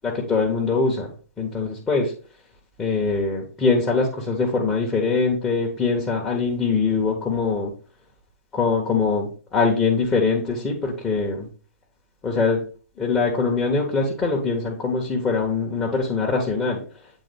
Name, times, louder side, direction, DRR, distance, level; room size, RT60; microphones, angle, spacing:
voice 1, 0.0-1.1 1.4-2.1 2.8-7.7 8.5-11.5 12.2-12.6 13.0-16.8, left 4 dB, 15° left, -3 dB, 1.1 m, -23 dB
8.3 x 3.6 x 3.4 m, 0.38 s
figure-of-eight pair, 120°, 9 cm